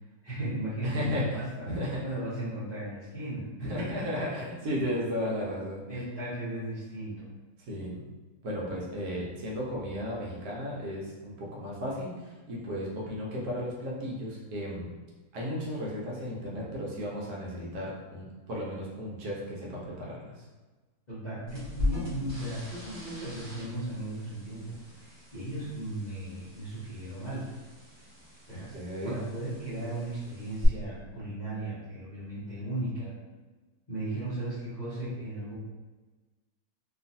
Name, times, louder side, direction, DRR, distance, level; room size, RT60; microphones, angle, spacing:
voice 1, 0.2-1.7 2.0-4.2 5.9-7.3 21.1-27.5 28.5-28.8 29.0-33.1 33.9-35.6, right 1 dB, 35° left, -11 dB, 0.8 m, -36 dB
voice 2, 0.8-2.0 3.6-6.0 7.7-8.0 8.4-14.9 15.3-20.5 28.7-29.1, equal, 70° right, -5 dB, 1.2 m, -34 dB
sound 1, 21.5-30.7, left 2 dB, 40° right, 1.0 m, -40 dB
3.0 x 2.4 x 2.6 m, 1.3 s
omnidirectional pair, 1.7 m